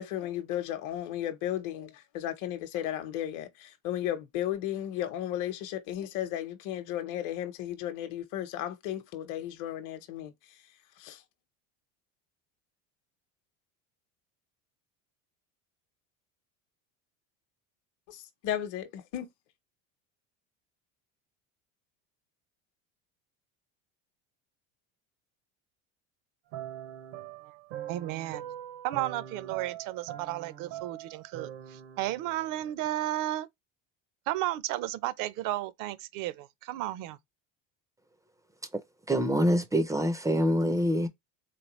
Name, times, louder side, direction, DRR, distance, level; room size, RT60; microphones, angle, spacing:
voice 1, 0.0-10.3 11.0-11.2 18.1-19.3, left 12 dB, 55° left, 0.9 m, -34 dB
sound 1, 26.5-32.9, right 11 dB, 80° right, 1.0 m, -43 dB
voice 2, 27.9-28.4 28.8-33.5 34.3-37.2, right 15 dB, 60° right, 0.6 m, -33 dB
voice 3, 39.1-41.1, equal, 10° right, 0.4 m, -25 dB
3.7 x 3.3 x 3.0 m
cardioid pair, 130°, 37 cm